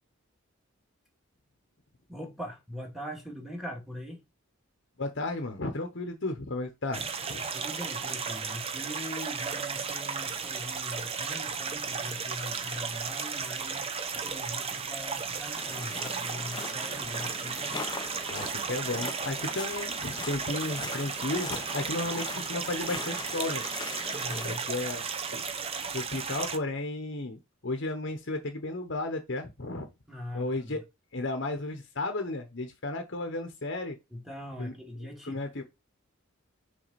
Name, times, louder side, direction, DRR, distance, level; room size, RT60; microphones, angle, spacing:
voice 1, 2.1-4.2 7.5-17.8 24.1-24.6 30.1-30.8 34.1-35.6, equal, ahead, 2.0 m, -42 dB
voice 2, 5.0-7.5 18.3-23.6 24.4-25.0 25.3-25.4 25.9-29.9 30.3-30.8 31.1-34.0 34.6-34.7 35.3-35.6, left 2 dB, 55° left, 1.0 m, -34 dB
sound 1, 6.9-26.6, right 5 dB, 30° right, 0.7 m, -34 dB
sound 2, 15.6-24.6, left 3 dB, 20° left, 0.6 m, -41 dB
6.3 x 3.9 x 4.2 m
head